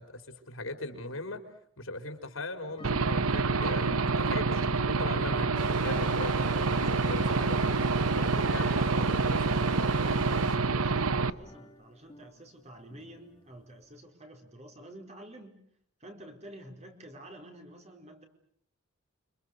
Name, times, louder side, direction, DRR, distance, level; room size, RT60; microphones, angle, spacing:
voice 1, 0.0-1.4 1.8-5.5 5.8-6.3 6.8-7.6 8.1-9.6, left 2 dB, 65° left, 8 dB, 4.2 m, -39 dB
sound 1, 2.7-14.0, left 1 dB, 20° left, 2.7 m, -48 dB
Aircraft / Engine, 2.8-11.3, right 4 dB, 80° right, 1.0 m, -27 dB
Stream, 5.5-10.6, right 2 dB, 55° right, 4.7 m, -38 dB
voice 2, 10.2-15.6 16.0-18.2, right 1 dB, 30° right, 4 dB, 4.5 m, -49 dB
30.0 x 25.5 x 6.5 m, 0.65 s
head